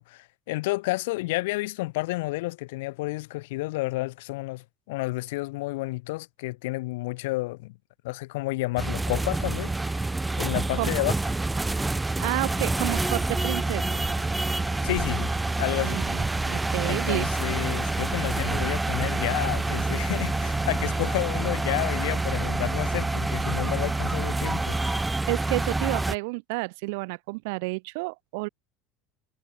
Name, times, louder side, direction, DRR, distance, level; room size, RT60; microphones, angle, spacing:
voice 1, 0.0-7.8 8.0-10.1 10.4-11.1 14.8-16.0 16.9-25.2, left 21 dB, 75° left, 2.9 m, -31 dB
sound 1, 8.8-26.2, right 2 dB, 5° right, 0.9 m, -27 dB
voice 2, 12.2-14.0 15.8-17.3 25.3-28.5, right 28 dB, 65° right, 3.2 m, -30 dB
sound 2, 12.5-23.8, right 20 dB, 40° right, 4.8 m, -45 dB
cardioid pair, 180°, 0 cm